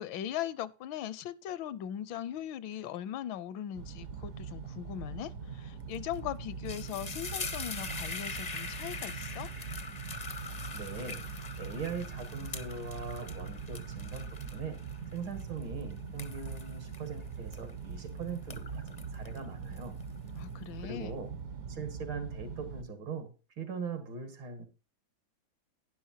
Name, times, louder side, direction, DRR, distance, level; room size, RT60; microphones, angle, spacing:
voice 1, 0.0-9.5 20.3-21.2, left 11 dB, 80° left, 1.3 m, -39 dB
sound 1, 3.7-22.8, right 6 dB, 60° right, 1.0 m, -42 dB
sound 2, 5.9-6.2 6.5-18.0 18.4-20.3, left 4 dB, 55° left, 0.4 m, -43 dB
voice 2, 10.7-14.8 15.1-20.0 20.8-21.3 21.7-24.6, right 5 dB, 80° right, 2.6 m, -41 dB
11.5 x 10.5 x 2.7 m
omnidirectional pair, 2.1 m